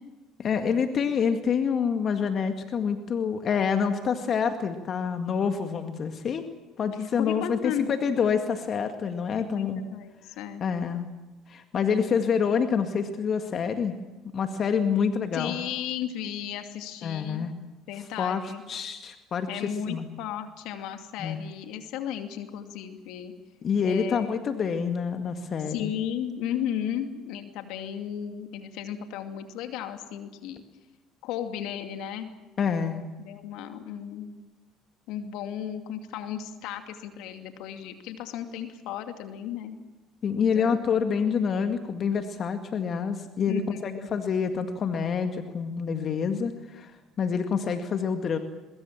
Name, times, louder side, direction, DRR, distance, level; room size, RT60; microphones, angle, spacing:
voice 1, 0.4-6.5 6.8-9.8 10.6-11.1 11.5-14.0 14.3-15.5 17.0-17.5 18.2-20.1 21.2-21.4 23.6-25.9 32.6-33.1 40.2-48.4, left 6 dB, 45° left, 6 dB, 2.0 m, -27 dB
voice 2, 7.2-7.9 9.4-10.6 15.3-17.5 17.9-18.6 19.5-23.3 23.8-24.4 25.7-30.6 31.2-32.3 33.2-34.3 35.1-39.8 40.5-40.8 43.5-44.1, left 9 dB, 70° left, 6 dB, 2.5 m, -34 dB
23.5 x 22.5 x 7.5 m, 1.1 s
hypercardioid pair, 65°, 0 cm